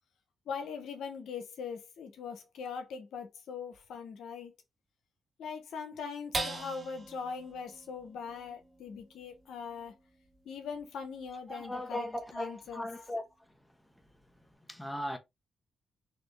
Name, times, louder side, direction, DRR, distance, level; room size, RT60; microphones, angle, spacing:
voice 1, 0.5-4.5 5.4-10.0 10.4-12.1 12.3-12.9, left 6 dB, 80° left, 1.1 m, -41 dB
sound 1, 6.3-13.0 13.5-13.6 14.0-14.5, right 3 dB, 45° right, 1.8 m, -44 dB
voice 2, 11.5-13.5 14.7-15.2, left 1 dB, 5° left, 1.3 m, -38 dB
4.3 x 3.0 x 3.3 m
supercardioid pair, 60°, 0 cm